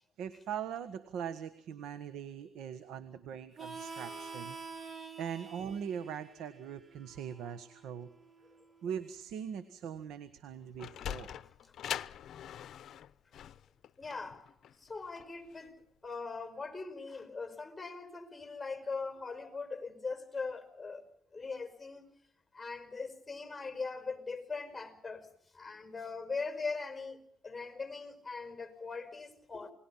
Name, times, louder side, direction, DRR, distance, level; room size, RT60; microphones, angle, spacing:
voice 1, 0.2-4.6 4.8-8.1 8.8-11.4, right 8 dB, 80° right, 1.5 m, -41 dB
Harmonica, 3.6-8.8, right 4 dB, 30° right, 3.6 m, -48 dB
Sliding door, 10.5-15.7, left 10 dB, 65° left, 0.8 m, -43 dB
voice 2, 14.0-14.4 14.8-15.7 16.0-21.0 21.3-22.1 22.5-25.3 25.5-29.7, left 4 dB, 15° left, 5.1 m, -40 dB
28.5 x 20.0 x 5.6 m
cardioid pair, 100°, 0 cm